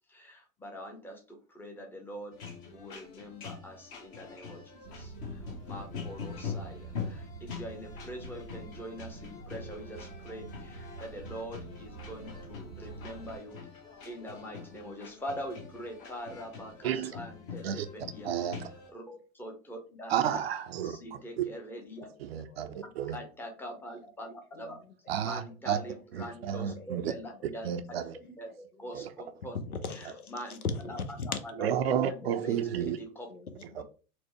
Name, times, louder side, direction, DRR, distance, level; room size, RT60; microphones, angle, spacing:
voice 1, 0.1-2.4 2.7-13.6 14.0-18.3 18.9-20.4 20.8-22.1 22.6-22.7 23.1-24.8 25.2-27.7 28.2-28.5 28.8-29.6 30.3-31.3 31.6-31.7 32.2-33.3 33.8-33.9, equal, 5° left, 0.7 m, -43 dB
sound 1, 2.3-18.9, left 6 dB, 40° left, 1.2 m, -44 dB
sound 2, 4.8-13.4, right 4 dB, 85° right, 0.8 m, -47 dB
voice 2, 16.8-17.2 17.6-17.9 18.2-18.7 20.1-21.5 22.2-23.2 25.1-25.8 26.1-27.1 27.4-28.2 28.9-29.1 31.6-33.0 33.8-33.9, right 9 dB, 45° right, 0.5 m, -32 dB
voice 3, 22.1-22.7 23.0-23.2 23.6-23.7 24.5-25.0 26.8-27.0 28.7-31.4 32.0-32.4 32.7-33.0 33.3-33.8, left 4 dB, 80° left, 0.8 m, -40 dB
4.4 x 2.1 x 4.1 m
figure-of-eight pair, 100°, 43 cm